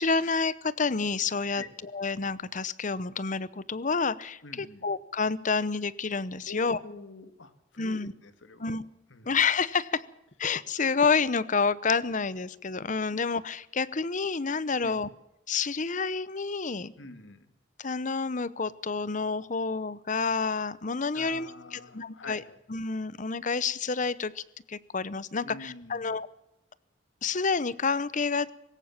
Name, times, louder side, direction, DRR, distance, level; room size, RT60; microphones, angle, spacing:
voice 1, 0.0-6.8 7.8-8.1 8.6-8.8 9.3-10.0 10.4-15.1 15.5-16.9 17.8-22.4 22.7-24.4 24.7-26.3 27.2-28.5, left 4 dB, 45° left, 18 dB, 0.9 m, -29 dB
voice 2, 4.4-4.8 6.5-8.8 9.1-9.4 14.7-15.0 17.0-17.5 21.1-22.6 25.4-26.2, left 3 dB, 90° left, 11 dB, 2.1 m, -46 dB
20.0 x 18.0 x 7.4 m, 0.86 s
head